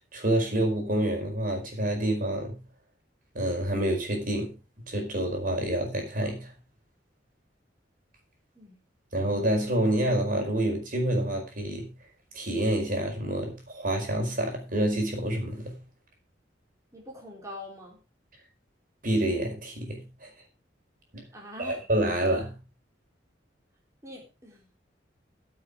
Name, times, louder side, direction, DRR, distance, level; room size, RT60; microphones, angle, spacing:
voice 1, 0.1-2.6 3.3-6.5 9.1-11.9 12.3-15.8 19.0-20.3 21.1-21.3 21.6-22.6, right 1 dB, 50° right, 4.9 m, -28 dB
voice 2, 16.9-18.0 21.3-21.8 24.0-24.7, left 1 dB, 15° right, 3.9 m, -44 dB
16.0 x 7.3 x 4.9 m
head